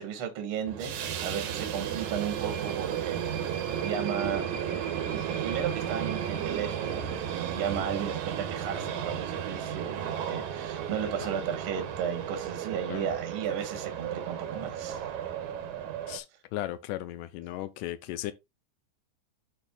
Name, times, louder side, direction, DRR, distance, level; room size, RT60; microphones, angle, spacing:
voice 1, 0.0-3.2 3.8-4.5 5.1-15.0, right 8 dB, 55° right, 1.8 m, -34 dB
sound 1, 0.7-16.2, right 9 dB, 70° right, 2.3 m, -34 dB
voice 2, 16.5-18.3, left 14 dB, 80° left, 2.1 m, -36 dB
12.5 x 4.4 x 2.3 m
omnidirectional pair, 3.8 m